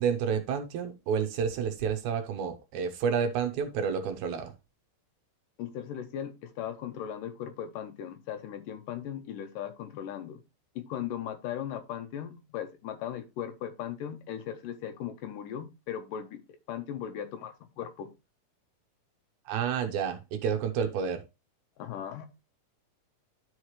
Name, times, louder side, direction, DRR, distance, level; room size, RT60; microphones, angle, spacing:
voice 1, 0.0-4.5 19.5-21.2, right 7 dB, 70° right, 2.3 m, -30 dB
voice 2, 5.6-10.4 10.8-18.1 21.8-22.3, left 9 dB, 85° left, 2.7 m, -38 dB
12.0 x 4.9 x 3.2 m
omnidirectional pair, 3.7 m